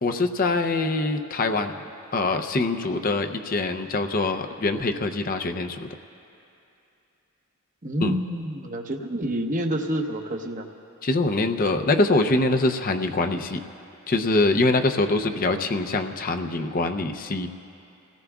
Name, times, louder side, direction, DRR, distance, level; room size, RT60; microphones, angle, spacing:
voice 1, 0.0-1.7 2.1-5.9 8.0-8.2 11.0-13.6 14.1-17.5, left 2 dB, 40° left, 6 dB, 0.6 m, -24 dB
voice 2, 7.8-10.7, right 1 dB, 35° right, 4 dB, 0.9 m, -28 dB
30.0 x 17.5 x 2.4 m, 2.7 s
head